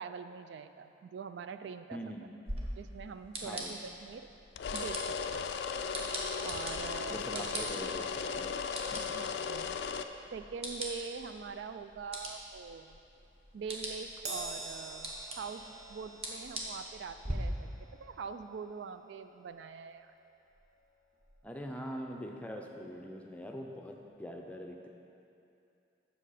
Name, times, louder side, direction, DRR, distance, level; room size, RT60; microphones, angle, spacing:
voice 1, 0.0-2.0 2.8-4.3 4.7-5.5 6.4-7.7 8.9-9.8 10.3-13.0 13.5-17.7 18.0-20.1, right 5 dB, 75° right, 10 dB, 0.3 m, -43 dB
voice 2, 1.9-2.4 3.4-3.7 7.1-8.0 8.4-8.5 8.9-9.2 21.4-24.9, equal, 5° left, 1 dB, 0.5 m, -43 dB
sound 1, 2.5-17.3, right 1 dB, 30° right, 1.0 m, -44 dB
sound 2, 4.6-10.0, left 6 dB, 70° left, 0.3 m, -36 dB
Crash cymbal, 14.3-20.9 21.2-21.4 22.5-22.6, right 2 dB, 60° right, 1.0 m, -47 dB
7.8 x 6.5 x 4.9 m, 2.7 s
head